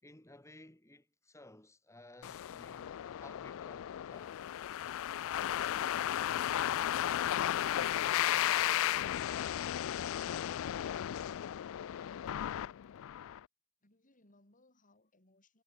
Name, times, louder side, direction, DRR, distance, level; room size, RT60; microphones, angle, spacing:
voice 1, 0.0-4.4, left 1 dB, 15° left, 3.1 m, -57 dB
sound 1, 2.2-13.4, left 11 dB, 65° left, 0.3 m, -34 dB
voice 2, 13.8-15.6, left 2 dB, 40° left, 4.8 m, -68 dB
head